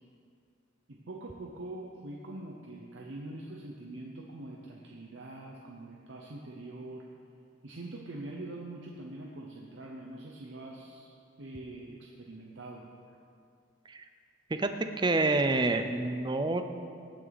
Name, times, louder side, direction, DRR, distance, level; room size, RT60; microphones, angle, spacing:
voice 1, 0.9-7.1 7.6-11.1 11.4-12.9, right 2 dB, 70° right, -1 dB, 0.9 m, -44 dB
voice 2, 15.0-16.6, right 2 dB, 25° right, 8 dB, 0.5 m, -27 dB
18.0 x 6.2 x 4.1 m, 2.4 s
head